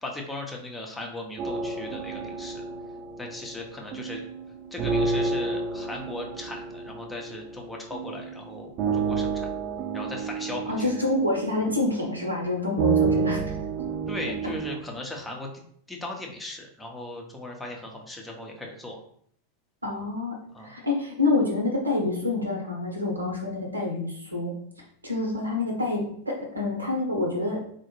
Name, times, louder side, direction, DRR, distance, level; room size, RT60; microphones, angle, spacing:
voice 1, 0.0-2.7 3.2-4.2 4.7-9.5 9.9-10.9 14.1-15.6 15.9-19.0 20.5-20.7, left 2 dB, 10° left, 0 dB, 0.6 m, -37 dB
sound 1, 1.4-14.8, right 5 dB, 35° right, 0.5 m, -30 dB
voice 2, 10.7-13.4 19.8-20.4 20.6-24.5 25.0-27.6, left 2 dB, 80° right, 0 dB, 0.8 m, -27 dB
3.8 x 2.1 x 3.0 m, 0.63 s
figure-of-eight pair, 90°, 0 cm